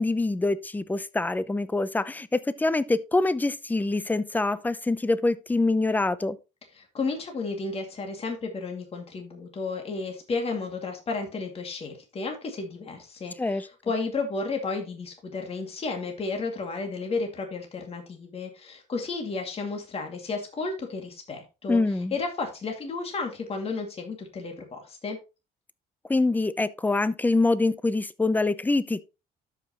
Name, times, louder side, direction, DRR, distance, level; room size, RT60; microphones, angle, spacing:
voice 1, 0.0-6.4 13.4-13.7 21.7-22.1 26.1-29.0, left 2 dB, 10° left, 0.6 m, -25 dB
voice 2, 6.7-21.8 22.1-25.2, left 4 dB, 35° left, 2.3 m, -32 dB
12.5 x 5.5 x 3.0 m
cardioid pair, 110°, 17 cm